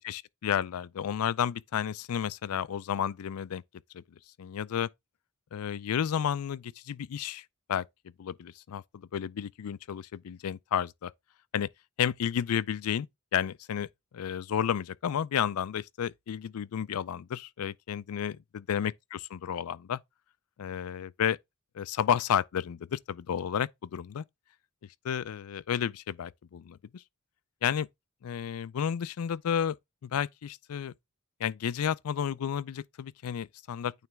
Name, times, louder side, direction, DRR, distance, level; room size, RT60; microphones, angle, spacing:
voice 1, 0.0-3.6 3.9-4.0 4.4-4.9 5.5-7.9 8.2-11.1 11.5-11.7 12.0-13.1 13.3-13.9 14.1-20.0 20.6-21.4 21.7-24.2 25.0-27.0 27.6-27.9 28.2-29.8 30.0-30.9 31.4-33.9, left 8 dB, 85° left, 0.4 m, -31 dB
9.1 x 3.2 x 3.4 m
head